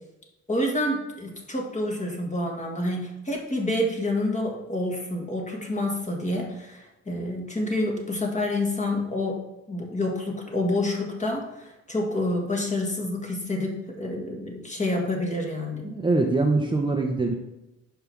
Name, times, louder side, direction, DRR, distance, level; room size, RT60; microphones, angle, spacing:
voice 1, 0.5-9.4 9.7-15.9, left 1 dB, 25° left, 0 dB, 1.8 m, -28 dB
voice 2, 15.8-17.3, right 3 dB, 15° right, 2 dB, 0.7 m, -23 dB
5.6 x 5.4 x 4.7 m, 0.96 s
cardioid pair, 90°, 30 cm